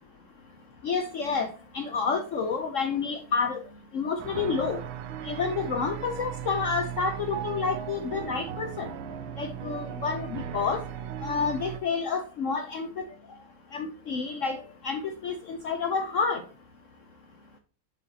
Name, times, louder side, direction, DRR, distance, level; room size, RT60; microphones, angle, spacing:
voice 1, 0.8-3.6 3.9-4.8 5.2-8.9 9.4-10.8 11.2-12.9 13.7-16.4, left 5 dB, 85° left, 6 dB, 0.6 m, -29 dB
sound 1, 4.2-11.8, right 9 dB, 75° right, 1.4 m, -37 dB
7.7 x 6.0 x 2.8 m, 0.39 s
omnidirectional pair, 2.3 m